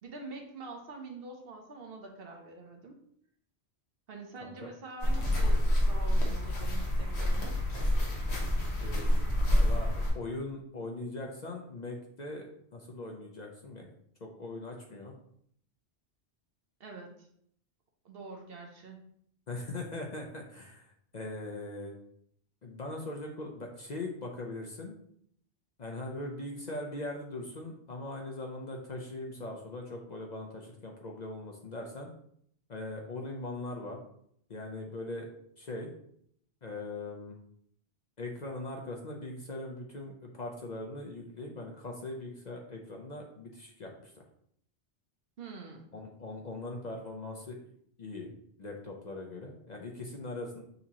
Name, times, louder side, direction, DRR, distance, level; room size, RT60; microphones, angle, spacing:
voice 1, 0.0-2.9 4.1-7.6 16.8-17.3 18.0-19.1 45.4-45.9, right 3 dB, 60° right, 2 dB, 0.9 m, -45 dB
sound 1, 5.0-10.1, left 1 dB, 75° left, 1.4 m, -27 dB
voice 2, 9.5-13.9 14.2-15.1 19.5-21.9 22.6-24.9 25.8-32.1 32.7-34.0 34.5-35.3 35.6-35.9 36.6-37.4 38.2-44.2 45.9-47.6 48.0-48.3 48.6-50.6, left 2 dB, 50° left, 1 dB, 0.6 m, -40 dB
6.6 x 2.8 x 2.9 m, 0.68 s
omnidirectional pair, 1.1 m